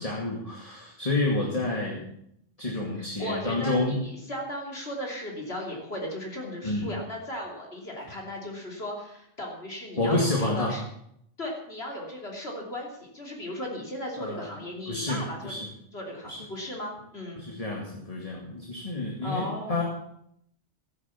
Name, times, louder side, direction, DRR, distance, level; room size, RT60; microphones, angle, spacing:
voice 1, 0.0-2.0 2.6-4.0 6.6-6.9 10.0-10.8 14.2-14.5 14.9-15.7 16.2-16.4 17.4-19.8, left 2 dB, 30° left, -2 dB, 2.5 m, -29 dB
voice 2, 3.2-10.8 11.4-15.5 15.9-17.6 19.2-19.8, equal, 55° left, 0 dB, 3.4 m, -36 dB
14.0 x 10.5 x 7.2 m, 0.72 s
omnidirectional pair, 1.2 m